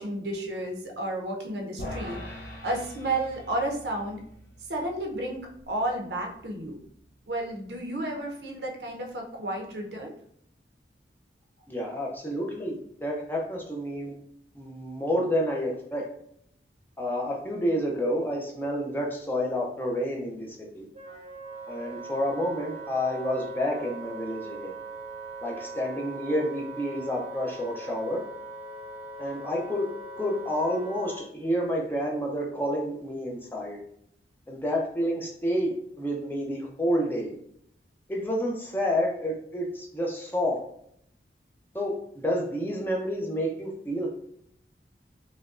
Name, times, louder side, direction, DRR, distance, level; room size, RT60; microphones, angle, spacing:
voice 1, 0.0-2.2 2.6-4.2 4.7-6.8 7.3-10.1, right 1 dB, 70° right, 1 dB, 0.8 m, -32 dB
sound 1, 1.8-8.2, left 1 dB, 90° left, 0.7 m, -44 dB
voice 2, 11.7-14.1 14.6-16.1 17.0-20.9 21.7-24.7 25.4-28.2 29.2-29.9 30.2-33.8 34.5-37.4 38.1-40.6 41.7-44.1, equal, 10° left, -2 dB, 0.5 m, -29 dB
Wind instrument woodwind instrument, 20.9-31.2, right 3 dB, 35° right, 0.7 m, -41 dB
5.0 x 2.2 x 2.5 m, 0.69 s
head